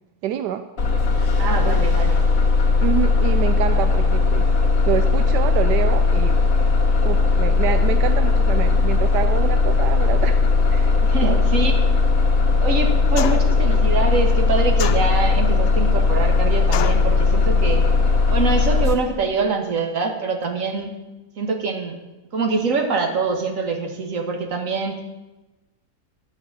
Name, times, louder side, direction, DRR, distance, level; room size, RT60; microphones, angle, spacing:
voice 1, 0.2-0.6 1.6-1.9 2.8-4.5 4.9-6.4 7.0-10.4 10.7-11.5, right 10 dB, 85° right, 9 dB, 1.2 m, -27 dB
Bus, 0.8-18.9, left 4 dB, 55° left, 2.0 m, -18 dB
voice 2, 1.4-2.3 11.0-11.7 12.6-17.8 18.3-20.9 21.4-22.0 22.3-25.0, right 4 dB, 50° right, 3 dB, 1.8 m, -24 dB
sound 1, 13.2-13.6 14.8-15.5 16.7-17.1, left 11 dB, 85° left, 1.2 m, -28 dB
11.0 x 6.1 x 8.5 m, 1.1 s
omnidirectional pair, 1.8 m